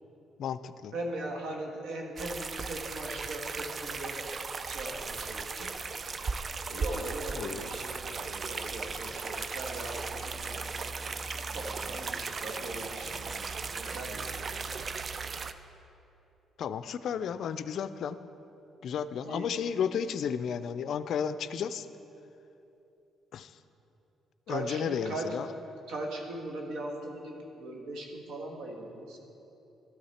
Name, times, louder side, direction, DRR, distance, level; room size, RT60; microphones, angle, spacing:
voice 1, 0.4-0.9 7.4-7.6 16.6-18.2 18.8-21.9 23.3-23.6 24.5-25.5, left 7 dB, 70° left, 13 dB, 0.4 m, -33 dB
voice 2, 0.9-4.2 4.6-5.7 6.7-10.7 11.5-14.7 19.2-19.5 24.5-25.4 25.9-29.2, right 2 dB, 85° right, 1 dB, 1.4 m, -39 dB
sound 1, 2.2-15.5, right 4 dB, 40° right, 0.4 m, -37 dB
12.5 x 8.6 x 4.3 m, 2.9 s
cardioid pair, 90°, 0 cm